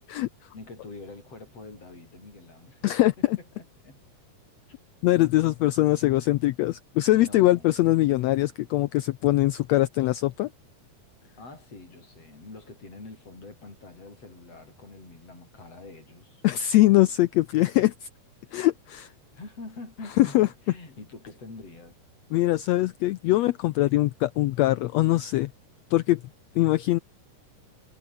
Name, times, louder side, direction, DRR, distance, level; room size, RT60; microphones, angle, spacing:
voice 1, 0.5-2.9 3.4-4.0 7.1-7.8 11.4-16.4 19.3-21.9, left 3 dB, 45° left, 8.4 m, -45 dB
voice 2, 2.8-3.4 5.0-10.5 16.4-18.1 18.5-19.1 20.2-20.5 22.3-25.5 25.9-26.2 26.5-27.0, left 16 dB, 85° left, 1.5 m, -22 dB
omnidirectional pair, 3.7 m